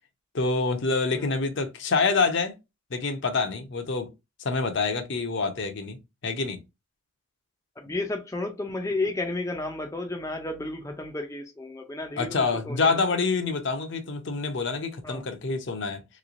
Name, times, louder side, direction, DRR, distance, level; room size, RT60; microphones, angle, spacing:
voice 1, 0.3-2.5 2.9-4.1 4.4-6.0 6.2-6.6 12.2-16.0, left 4 dB, 55° left, 0.6 m, -26 dB
voice 2, 7.8-12.9 15.0-15.2, left 2 dB, 15° left, 0.4 m, -32 dB
3.2 x 3.1 x 2.5 m
head